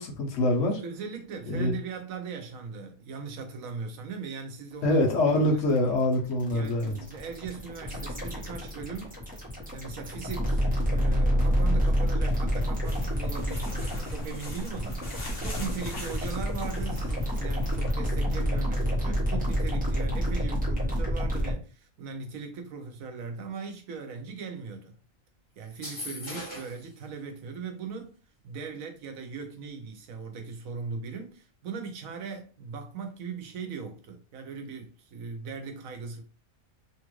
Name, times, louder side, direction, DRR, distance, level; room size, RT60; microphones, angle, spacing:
voice 1, 0.0-0.7 1.5-1.7 4.8-6.9, left 1 dB, 65° left, 1.1 m, -24 dB
voice 2, 0.6-5.0 5.3-5.6 6.5-9.2 9.7-24.9 25.6-28.2 28.4-36.2, right 5 dB, 80° right, 1.1 m, -39 dB
sound 1, 5.0-21.5, equal, 5° right, 0.9 m, -28 dB
sound 2, 12.8-17.9, equal, 50° left, 1.0 m, -39 dB
sound 3, 25.7-26.9, left 1 dB, 20° left, 1.5 m, -39 dB
3.1 x 2.4 x 3.0 m
omnidirectional pair, 1.4 m